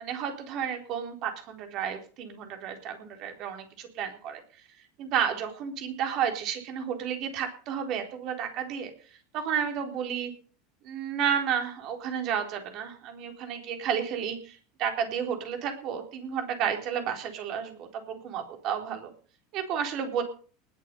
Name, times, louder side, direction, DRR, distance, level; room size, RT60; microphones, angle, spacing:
voice 1, 0.0-4.4 5.0-8.9 9.3-10.3 10.8-19.1 19.5-20.2, right 8 dB, 50° right, 5 dB, 3.9 m, -31 dB
19.5 x 7.5 x 5.4 m, 0.39 s
hypercardioid pair, 80°, 0 cm